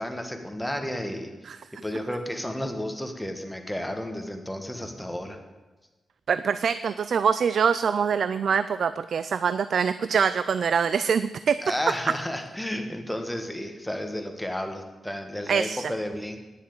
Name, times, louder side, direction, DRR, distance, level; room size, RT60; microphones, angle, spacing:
voice 1, 0.0-1.3 1.8-5.4 11.6-16.4, left 1 dB, 5° left, 5 dB, 1.4 m, -32 dB
voice 2, 6.3-11.6 15.5-15.9, right 6 dB, 65° right, 14 dB, 0.3 m, -24 dB
10.0 x 7.2 x 8.7 m, 1.2 s
wide cardioid pair, 110°, 0 cm